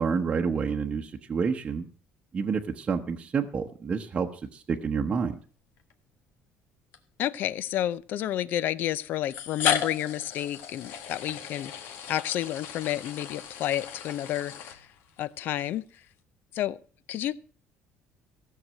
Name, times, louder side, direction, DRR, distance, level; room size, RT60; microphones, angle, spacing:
voice 1, 0.0-1.9 2.3-5.4, right 5 dB, 25° right, 1 dB, 0.9 m, -29 dB
sound 1, 5.8-5.9 6.9-7.0 8.2-8.3 9.2-15.2, left 8 dB, 70° left, 1.7 m, -35 dB
voice 2, 7.2-14.9 15.2-15.8 16.5-16.8 17.1-17.3, left 12 dB, 55° left, 18 dB, 0.6 m, -30 dB
16.0 x 6.7 x 7.5 m, 0.41 s
cardioid pair, 155°, 4 cm